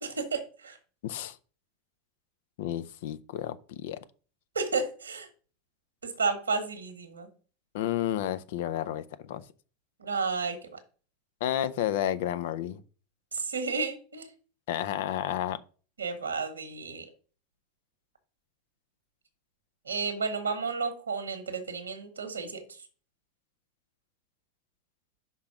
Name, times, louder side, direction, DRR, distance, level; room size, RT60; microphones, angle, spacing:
voice 1, 0.0-0.8 4.5-5.3 6.0-7.3 10.0-10.8 13.3-14.3 16.0-17.0 19.9-22.6, right 4 dB, 85° right, 1.1 m, -32 dB
voice 2, 1.0-1.4 2.6-4.0 7.7-9.4 11.4-12.8 14.7-15.6, left 11 dB, 65° left, 0.5 m, -31 dB
5.6 x 3.8 x 5.9 m
figure-of-eight pair, 85°, 0 cm